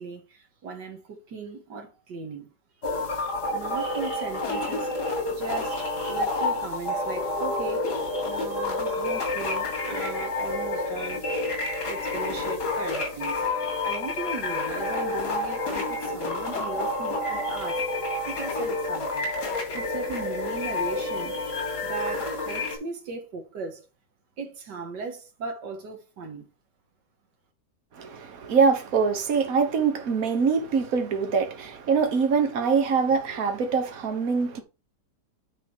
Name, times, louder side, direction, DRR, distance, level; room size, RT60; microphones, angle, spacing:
voice 1, 0.0-2.5 2.8-2.9 3.5-4.9 5.3-7.9 8.2-11.3 11.9-13.4 13.8-17.8 18.3-19.3 19.7-21.4 21.8-23.8 24.4-26.5, right 4 dB, 80° right, 2.2 m, -37 dB
sound 1, 2.8-22.8, left 2 dB, 70° left, 3.4 m, -29 dB
voice 2, 27.9-34.6, right 5 dB, 55° right, 1.6 m, -24 dB
9.1 x 4.9 x 4.6 m
omnidirectional pair, 1.8 m